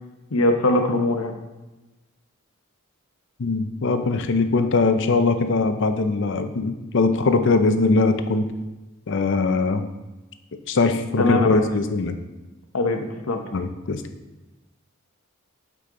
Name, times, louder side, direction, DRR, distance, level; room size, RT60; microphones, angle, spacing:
voice 1, 0.3-1.3 11.2-11.6 12.7-13.4, left 2 dB, 85° left, 5 dB, 0.9 m, -21 dB
voice 2, 3.4-8.4 9.1-9.8 10.7-12.1 13.5-14.0, left 3 dB, 60° left, 9 dB, 0.6 m, -21 dB
8.4 x 5.2 x 3.8 m, 1.1 s
head